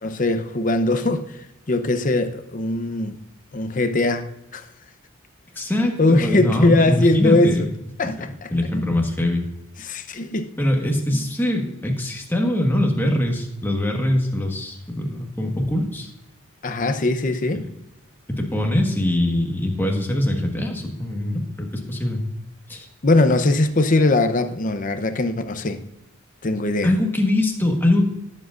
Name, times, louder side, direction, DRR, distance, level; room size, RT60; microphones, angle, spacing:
voice 1, 0.0-1.4 1.7-3.2 3.5-4.7 6.0-7.7 8.0-8.8 9.8-10.5 11.1-11.2 16.6-17.7 23.0-25.8 26.4-26.9, left 2 dB, 35° left, 0.7 m, -21 dB
voice 2, 5.5-7.6 8.2-9.4 10.6-16.1 17.5-17.7 18.3-22.2 22.7-22.9 26.8-28.1, left 1 dB, 10° left, 1.4 m, -22 dB
19.0 x 7.6 x 2.5 m
head